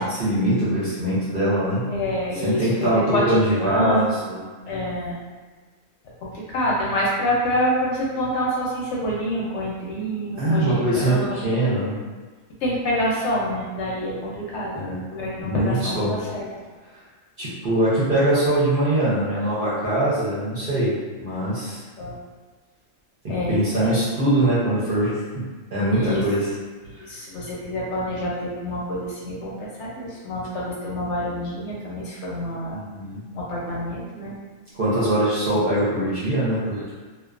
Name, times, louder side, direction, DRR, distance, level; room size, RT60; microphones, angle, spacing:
voice 1, 0.0-1.8 2.4-4.8 10.4-12.0 14.7-15.0 15.4-16.1 17.4-20.9 21.2-21.8 23.2-25.4 25.7-26.6 32.7-33.2 34.7-36.9, right 1 dB, 55° right, -9 dB, 0.7 m, -22 dB
voice 2, 1.9-4.2 4.7-5.2 6.5-11.5 12.6-14.8 15.1-16.7 22.0-22.1 23.3-23.9 25.9-26.2 26.8-32.8 33.3-34.3 36.7-36.8, equal, 70° left, -5 dB, 0.8 m, -27 dB
2.4 x 2.2 x 2.3 m, 1.4 s
omnidirectional pair, 1.4 m